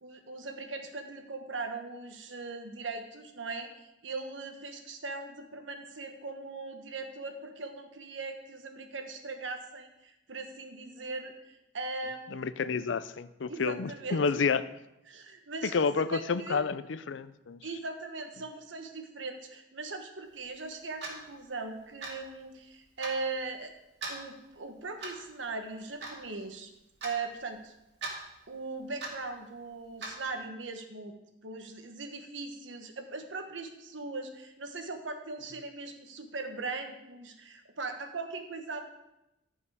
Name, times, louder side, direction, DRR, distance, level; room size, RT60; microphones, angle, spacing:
voice 1, 0.0-12.4 13.5-14.2 15.1-16.7 17.6-23.7 24.1-26.7 27.0-27.7 28.5-31.1 31.4-38.8, right 3 dB, 85° right, 5 dB, 1.2 m, -39 dB
voice 2, 12.3-14.7 15.6-17.6, left 5 dB, 80° left, 15 dB, 0.5 m, -30 dB
Clock, 21.0-21.2 22.0-22.2 23.0-23.2 24.0-24.2 25.0-25.3 26.0-26.2 27.0-27.2 28.0-28.2 29.0-29.2 30.0-30.2, right 3 dB, 65° right, 2.4 m, -38 dB
14.0 x 5.4 x 4.9 m, 0.91 s
head